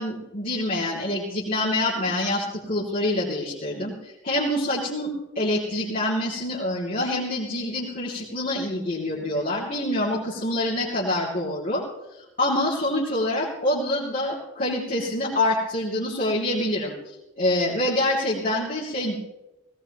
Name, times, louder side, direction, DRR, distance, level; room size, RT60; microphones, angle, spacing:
voice 1, 0.0-11.8 12.4-16.9 17.4-19.2, left 1 dB, 45° left, -8 dB, 2.9 m, -26 dB
19.5 x 17.0 x 3.0 m, 0.95 s
head